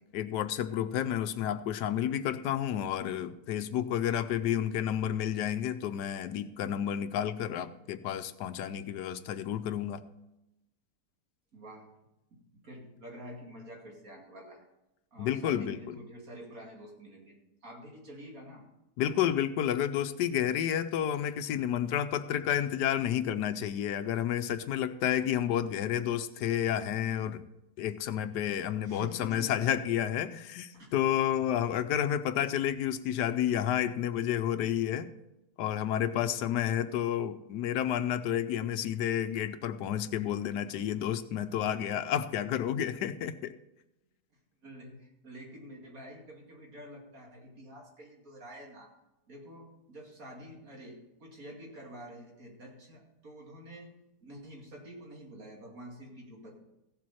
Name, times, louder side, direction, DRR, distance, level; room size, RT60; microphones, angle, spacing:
voice 1, 0.1-10.0 15.2-15.9 19.0-27.4 27.8-35.1 35.6-43.5, left 10 dB, 80° left, 11 dB, 1.2 m, -30 dB
voice 2, 11.5-11.9 12.3-14.6 15.1-18.7 28.8-29.6 30.7-30.9 44.6-48.9 49.3-53.9 54.2-56.6, equal, 55° right, -1 dB, 2.8 m, -48 dB
15.5 x 7.6 x 4.2 m, 0.92 s
omnidirectional pair, 1.8 m